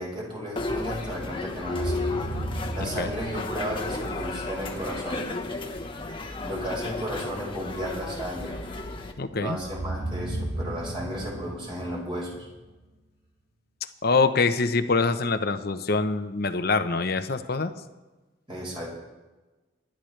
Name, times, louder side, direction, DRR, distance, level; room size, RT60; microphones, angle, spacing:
voice 1, 0.0-2.1 2.7-5.3 6.4-8.6 9.3-12.5 18.5-18.9, equal, 30° right, -2 dB, 4.7 m, -34 dB
sound 1, 0.6-9.1, left 2 dB, 25° left, 1.2 m, -33 dB
sound 2, 1.6-4.6 9.6-12.8, right 1 dB, 55° right, 2.8 m, -35 dB
voice 2, 2.8-3.1 9.2-9.6 14.0-17.7, left 4 dB, 55° left, 9 dB, 0.9 m, -25 dB
25.0 x 12.0 x 3.3 m, 1.2 s
head